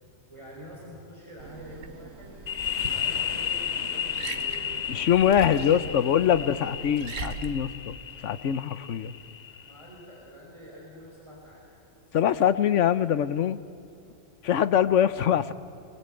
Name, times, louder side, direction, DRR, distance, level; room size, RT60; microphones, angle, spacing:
voice 1, 0.0-2.4 2.8-6.5 9.6-11.7 12.0-12.4, equal, 25° right, -5 dB, 5.6 m, -47 dB
Liquid, 1.4-7.5, right 4 dB, 85° right, 1.7 m, -40 dB
sound 1, 2.5-9.9, left 8 dB, 45° left, 0.7 m, -33 dB
voice 2, 4.9-7.9 8.2-9.1 12.1-13.6 14.4-15.5, left 9 dB, 75° left, 14 dB, 1.1 m, -23 dB
28.5 x 20.5 x 9.0 m, 2.6 s
omnidirectional pair, 1.3 m